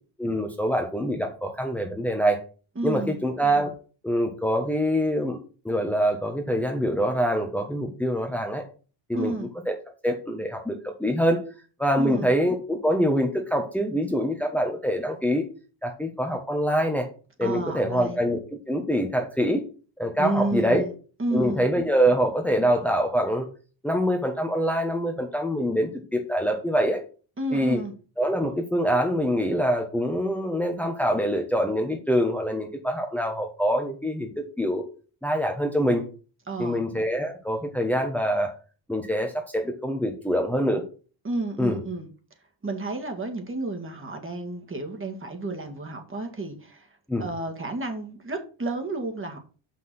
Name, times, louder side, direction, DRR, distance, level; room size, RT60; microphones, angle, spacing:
voice 1, 0.2-2.4 2.8-3.7 4.0-5.4 5.6-8.6 9.1-9.3 9.7-9.8 10.0-11.4 11.8-15.4 15.8-17.1 17.4-19.7 20.0-20.8 21.3-23.5 23.8-27.0 27.5-27.8 28.2-34.8 35.2-36.0 36.6-38.5 38.9-40.8 41.6-41.8 47.1-47.3, equal, 5° left, 2 dB, 1.2 m, -25 dB
voice 2, 2.8-3.2 9.1-9.5 12.0-12.3 17.4-18.2 20.2-20.9 21.2-21.6 27.4-27.9 36.5-36.8 41.2-42.1 42.6-46.9 47.2-49.4, right 2 dB, 25° right, 4 dB, 2.0 m, -31 dB
6.0 x 5.9 x 6.1 m, 0.37 s
cardioid pair, 105°, 47 cm